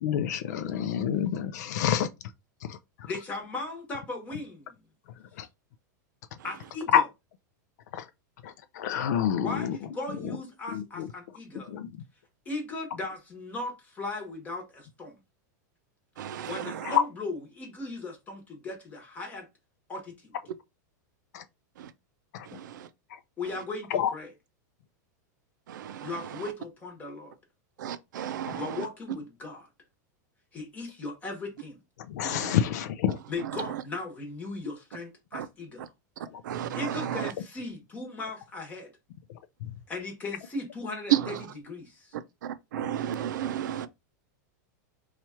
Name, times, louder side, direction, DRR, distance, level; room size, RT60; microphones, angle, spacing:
voice 1, 0.0-2.1 2.7-2.8 5.4-5.5 6.9-7.0 7.9-8.0 8.4-9.8 10.2-10.3 10.7-11.1 11.7-11.9 16.8-17.0 21.3-21.4 22.3-22.6 23.9-24.1 28.5-28.6 32.1-33.2 39.6-39.7, left 9 dB, 65° left, 0.4 m, -27 dB
voice 2, 3.1-4.8 6.4-7.1 9.4-11.7 12.4-15.2 16.5-19.5 19.9-20.4 23.4-24.3 26.0-27.3 28.5-29.7 30.5-31.8 33.3-35.9 36.8-38.9 39.9-42.2, left 3 dB, 15° left, 1.1 m, -37 dB
voice 3, 16.2-16.5 25.7-26.1 27.8-28.6 32.2-32.5 36.5-36.8 42.7-43.9, right 10 dB, 85° right, 0.4 m, -34 dB
2.9 x 2.4 x 4.2 m
supercardioid pair, 155°, 10 cm